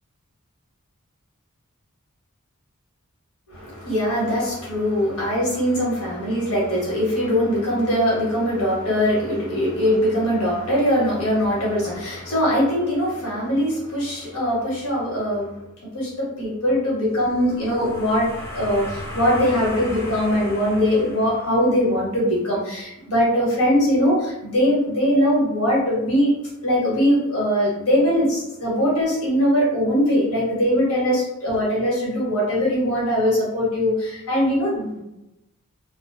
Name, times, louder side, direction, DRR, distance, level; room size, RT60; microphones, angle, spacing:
voice 1, 3.5-15.5 15.9-26.3 26.6-35.0, equal, 90° left, -5 dB, 1.1 m, -21 dB
sound 1, 17.2-21.9, equal, 10° left, 0.5 m, -35 dB
2.4 x 2.2 x 2.4 m, 0.90 s
head